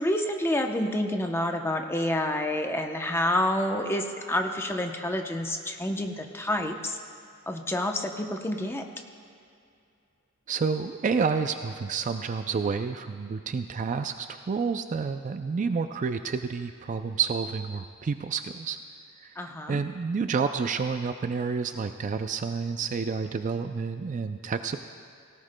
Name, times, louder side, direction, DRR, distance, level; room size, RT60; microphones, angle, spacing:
voice 1, 0.0-7.0 7.5-8.8 19.4-19.8, left 1 dB, 10° left, 4 dB, 0.7 m, -28 dB
voice 2, 10.5-18.8 19.7-24.8, right 5 dB, 35° right, 8 dB, 0.3 m, -29 dB
17.5 x 17.5 x 2.2 m, 2.5 s
head